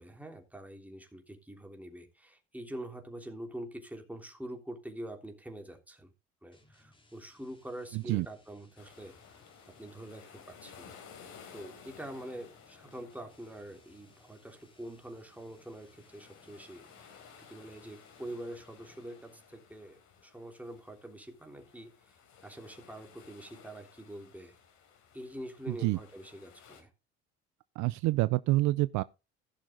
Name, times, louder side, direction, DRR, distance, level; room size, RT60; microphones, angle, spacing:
voice 1, 0.0-6.1 6.4-9.4 9.7-11.0 11.5-24.6 25.1-26.9, right 1 dB, 5° right, 3.2 m, -45 dB
sound 1, 6.5-19.6, left 2 dB, 15° left, 3.5 m, -65 dB
voice 2, 7.9-8.3 25.8-26.0 27.8-29.0, right 19 dB, 60° right, 0.5 m, -27 dB
sound 2, 8.8-26.8, left 7 dB, 60° left, 4.0 m, -56 dB
16.0 x 6.5 x 3.8 m
supercardioid pair, 85°, 33 cm